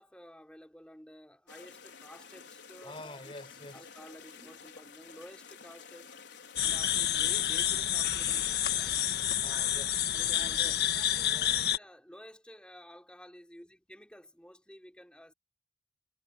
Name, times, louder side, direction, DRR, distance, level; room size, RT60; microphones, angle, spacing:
voice 1, 0.0-3.2 3.7-6.1 6.6-9.0 10.1-15.3, equal, 5° left, 5.4 m, -52 dB
sound 1, 1.5-9.2, left 5 dB, 85° left, 4.9 m, -51 dB
voice 2, 2.8-3.9 9.4-10.1 10.4-11.0 11.3-11.6, left 1 dB, 30° left, 5.0 m, -48 dB
sound 2, 6.6-11.8, left 11 dB, 60° left, 1.6 m, -29 dB
head